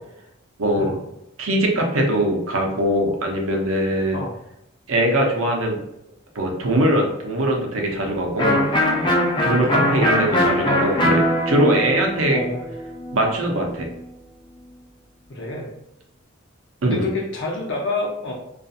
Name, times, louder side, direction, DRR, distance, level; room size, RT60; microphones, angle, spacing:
voice 1, 0.6-1.0 1.4-4.2 4.9-5.8 6.3-8.6 9.4-12.4 13.1-13.9 16.8-17.1, right 1 dB, 80° right, 1 dB, 0.6 m, -21 dB
Electric guitar, 8.4-14.0, left 1 dB, 25° left, 0.4 m, -22 dB
voice 2, 9.6-10.2 12.3-12.7 15.3-15.7 16.8-18.3, left 2 dB, 60° left, -1 dB, 0.7 m, -28 dB
2.6 x 2.4 x 2.4 m, 0.83 s
head